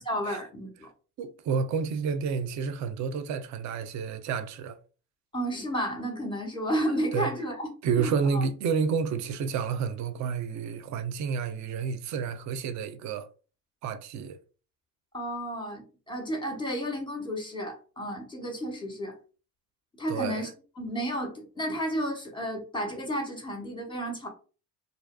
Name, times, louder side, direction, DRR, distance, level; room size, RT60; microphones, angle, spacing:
voice 1, 0.0-0.9 5.3-7.7 8.0-8.4 15.1-19.1 20.0-20.5 20.8-24.3, equal, 10° left, 1.0 m, -32 dB
voice 2, 1.2-4.8 7.1-7.3 7.8-13.3 13.8-14.4 20.1-20.4, right 6 dB, 40° right, 0.4 m, -30 dB
2.5 x 2.2 x 2.2 m
hypercardioid pair, 60°, 47 cm